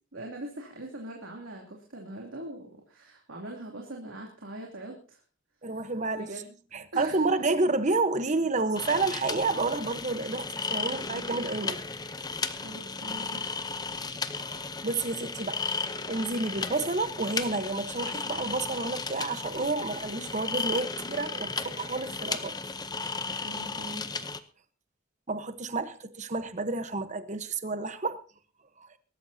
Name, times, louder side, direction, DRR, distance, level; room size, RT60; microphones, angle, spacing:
voice 1, 0.1-5.2 5.8-6.5 6.9-7.3 12.6-13.5 23.4-24.3, right 1 dB, 85° right, 2.9 m, -42 dB
voice 2, 5.6-6.3 6.7-11.8 14.4-22.6 23.3-23.4 25.3-28.2, right 3 dB, 40° right, 1.1 m, -30 dB
sound 1, 8.7-24.4, left 4 dB, 20° left, 0.7 m, -35 dB
22.5 x 13.0 x 2.8 m
head